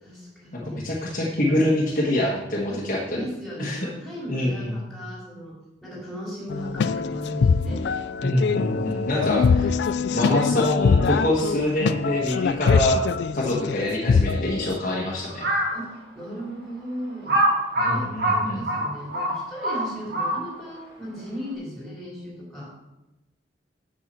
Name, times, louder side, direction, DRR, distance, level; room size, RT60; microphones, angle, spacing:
voice 1, 0.0-0.8 2.7-5.5 5.8-7.8 9.3-9.4 9.8-10.0 15.7-17.4 17.9-22.7, equal, ahead, -6 dB, 4.4 m, -36 dB
voice 2, 0.5-3.2 3.6-3.9 4.3-4.7 8.2-9.7 10.1-13.0 13.3-15.5 17.7-18.6, left 1 dB, 45° left, -3 dB, 1.6 m, -25 dB
sound 1, 6.5-14.8, left 5 dB, 70° left, 0.3 m, -23 dB
Crow, 15.3-15.8 16.4-16.5 17.3-20.7, right 1 dB, 55° right, 2.2 m, -24 dB
7.2 x 6.9 x 7.6 m, 0.97 s
head